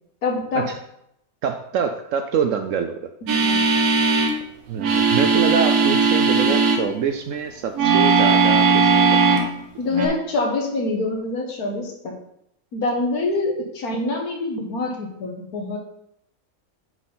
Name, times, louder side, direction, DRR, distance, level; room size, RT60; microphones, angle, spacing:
voice 1, 0.2-0.6 3.2-3.6 6.4-6.6 9.8-12.1 12.7-15.8, left 2 dB, 80° left, 1 dB, 1.8 m, -25 dB
voice 2, 1.4-3.1 4.7-9.4, right 7 dB, 70° right, 6 dB, 0.9 m, -25 dB
sound 1, 3.3-4.3 4.8-6.8 7.7-9.5 9.9-10.1, right 4 dB, 90° right, 1.5 m, -18 dB
9.0 x 4.3 x 3.8 m, 0.77 s
omnidirectional pair, 1.5 m